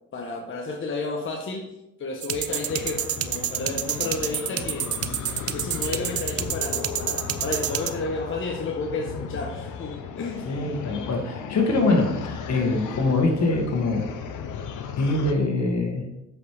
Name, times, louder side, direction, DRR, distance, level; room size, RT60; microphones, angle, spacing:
voice 1, 0.1-4.9 5.5-10.6, left 3 dB, 40° left, 0 dB, 1.2 m, -32 dB
sound 1, 2.2-7.9, right 10 dB, 50° right, 0.6 m, -28 dB
sound 2, 2.5-15.3, left 7 dB, 85° left, 0.9 m, -36 dB
voice 2, 10.5-14.1 15.0-16.0, left 2 dB, 60° left, 2 dB, 2.0 m, -23 dB
7.8 x 5.4 x 5.0 m, 0.92 s
cardioid pair, 90°, 30 cm